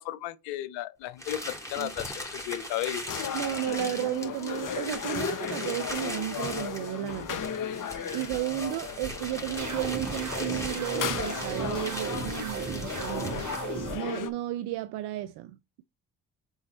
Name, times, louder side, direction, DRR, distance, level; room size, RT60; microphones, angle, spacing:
voice 1, 0.0-3.0, left 14 dB, 80° left, 0.7 m, -34 dB
sound 1, 1.2-13.8, left 1 dB, 5° left, 3.3 m, -40 dB
sound 2, 3.1-14.3, left 8 dB, 50° left, 1.0 m, -36 dB
voice 2, 3.3-7.5 8.1-13.5 13.9-15.8, right 15 dB, 70° right, 0.5 m, -33 dB
sound 3, 9.6-14.0, right 4 dB, 40° right, 1.9 m, -35 dB
6.3 x 4.0 x 4.2 m
hypercardioid pair, 40°, 42 cm